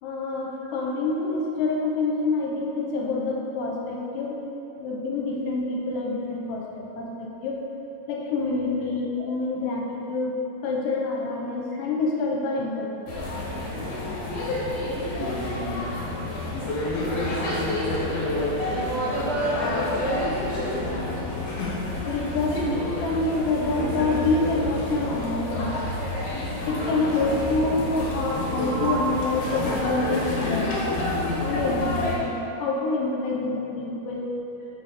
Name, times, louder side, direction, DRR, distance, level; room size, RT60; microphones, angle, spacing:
voice 1, 0.0-4.4 4.8-7.6 8.1-13.0 18.7-18.8 22.1-22.7 23.0-25.8 26.7-31.0 31.4-34.3, left 3 dB, 80° left, -1 dB, 2.2 m, -27 dB
sound 1, 13.1-32.2, left 1 dB, 60° left, 2.0 m, -29 dB
voice 2, 17.0-17.8 18.7-20.8 22.6-22.8 28.7-28.9, right 2 dB, 70° right, -9 dB, 1.2 m, -30 dB
6.6 x 6.2 x 4.0 m, 3.0 s
omnidirectional pair, 4.0 m